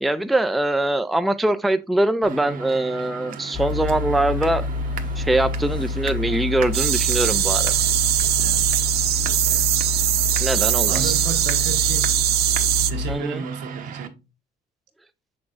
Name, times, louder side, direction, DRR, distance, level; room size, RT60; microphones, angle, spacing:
voice 1, 0.0-4.6 5.2-7.7 10.4-11.1 13.1-13.4, right 1 dB, ahead, 0.3 m, -22 dB
sound 1, 2.2-14.1, right 7 dB, 50° right, 1.0 m, -36 dB
sound 2, 3.5-13.2, left 3 dB, 25° left, 1.2 m, -28 dB
sound 3, 6.7-12.9, right 13 dB, 70° right, 0.6 m, -21 dB
voice 2, 8.4-8.8 9.5-9.8 10.2-10.5 10.8-12.2 12.9-14.2, right 7 dB, 85° right, 1.5 m, -33 dB
7.4 x 6.0 x 2.5 m
cardioid pair, 170°, 17 cm